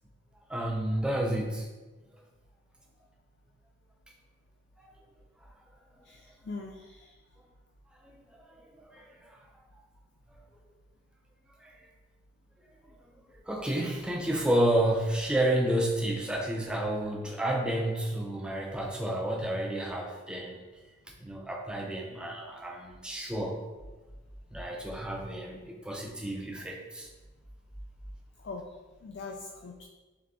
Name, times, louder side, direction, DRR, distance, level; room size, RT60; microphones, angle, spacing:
voice 1, 0.5-1.7 4.8-4.9 8.1-9.4 10.3-10.4 11.6-11.8 12.9-13.0 13.5-20.7 21.2-23.6 24.5-27.1, right 1 dB, 5° right, 0 dB, 0.4 m, -31 dB
voice 2, 6.0-7.1 28.4-28.8 29.0-29.8, left 3 dB, 55° left, 2 dB, 0.3 m, -42 dB
3.7 x 3.3 x 3.5 m, 1.2 s
head